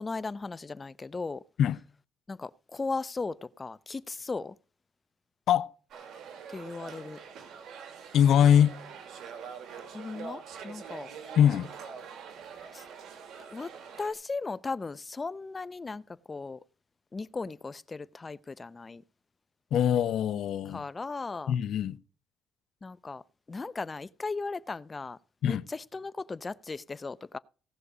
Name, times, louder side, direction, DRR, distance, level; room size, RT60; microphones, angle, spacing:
voice 1, 0.0-1.4 2.3-4.6 6.5-7.2 9.9-11.1 12.7-12.8 13.5-13.7 14.0-16.0 16.3-16.6 17.1-19.0 20.7-21.5 22.8-23.2 23.5-25.2 25.4-27.4, left 3 dB, 30° left, 0.6 m, -37 dB
sound 1, 5.9-14.1, right 6 dB, 80° right, 2.8 m, -44 dB
voice 2, 8.1-8.8 11.4-11.7 19.7-20.9 21.5-22.0 25.4-25.6, left 9 dB, 75° left, 0.7 m, -23 dB
17.5 x 6.6 x 5.0 m
cardioid pair, 90°, 0 cm